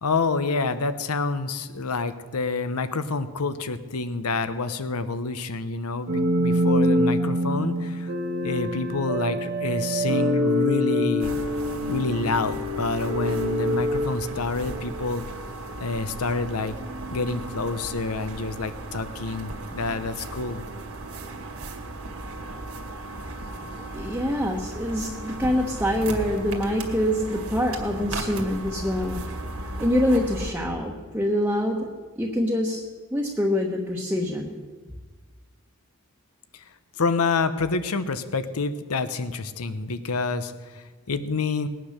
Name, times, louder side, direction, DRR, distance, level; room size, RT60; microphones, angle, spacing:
voice 1, 0.0-8.1 8.4-11.3 11.9-15.2 15.8-16.7 17.1-20.6 36.5-36.6 36.9-41.7, left 3 dB, 90° left, 12 dB, 0.9 m, -28 dB
sound 1, 6.1-15.0, equal, 50° right, 1.4 m, -25 dB
sound 2, 11.2-30.5, right 2 dB, 70° right, 2.1 m, -36 dB
voice 2, 23.9-29.2 29.8-32.8 33.1-34.5, left 1 dB, 10° right, -2 dB, 1.1 m, -25 dB
20.0 x 9.3 x 6.6 m, 1.4 s
head